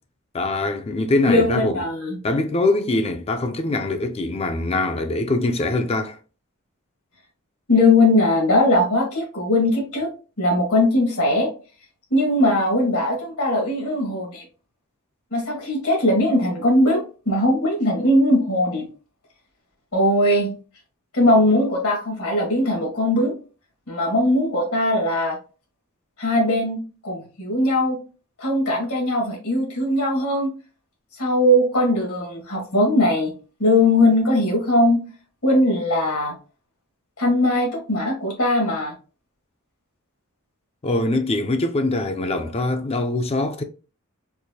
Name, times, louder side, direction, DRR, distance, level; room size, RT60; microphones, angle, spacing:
voice 1, 0.3-1.8 2.2-6.2 40.8-43.6, left 2 dB, 30° left, 0.4 m, -23 dB
voice 2, 1.3-2.2 7.7-10.1 10.4-11.5 12.1-14.4 15.3-18.9 19.9-20.5 21.1-23.3 23.9-25.4 26.2-28.0 28.4-30.5 31.2-33.3 33.6-35.0 35.4-36.3 37.2-38.9, left 1 dB, 85° left, 1.9 m, -20 dB
4.6 x 2.4 x 2.7 m
head